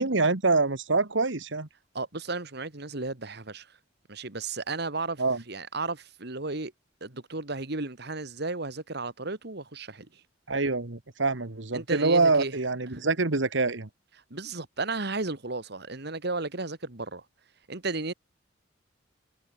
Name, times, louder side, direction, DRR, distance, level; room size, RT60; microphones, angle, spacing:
voice 1, 0.0-1.7 5.2-5.4 10.5-13.9, right 3 dB, 75° right, 1.6 m, -25 dB
voice 2, 1.9-3.7 4.1-5.2 5.5-6.7 7.0-10.1 11.7-12.5 12.9-13.1 14.3-17.2 17.7-18.1, right 3 dB, 60° right, 2.2 m, -34 dB
head